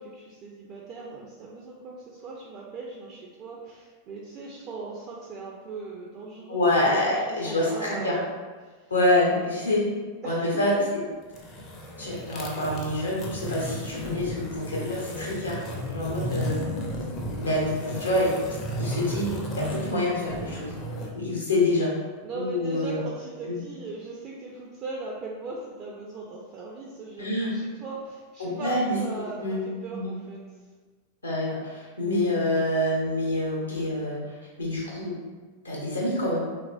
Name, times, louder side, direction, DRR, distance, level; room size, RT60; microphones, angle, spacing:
voice 1, 0.0-8.2 8.6-8.9 10.2-10.9 22.2-30.4, right 3 dB, 35° right, -3 dB, 0.4 m, -39 dB
voice 2, 6.5-8.2 8.9-9.8 10.2-10.7 12.0-15.6 15.9-16.7 17.4-18.3 18.8-20.7 21.1-21.9 22.3-23.1 23.4-23.6 27.2-27.5 28.4-29.0 29.4-29.6 29.9-30.1 31.2-34.2 34.6-35.2 35.6-36.5, left 1 dB, 75° left, -4 dB, 0.8 m, -26 dB
sound 1, 11.2-21.1, equal, 35° left, 0.5 m, -34 dB
3.1 x 2.4 x 2.3 m, 1.4 s
figure-of-eight pair, 90°, 0 cm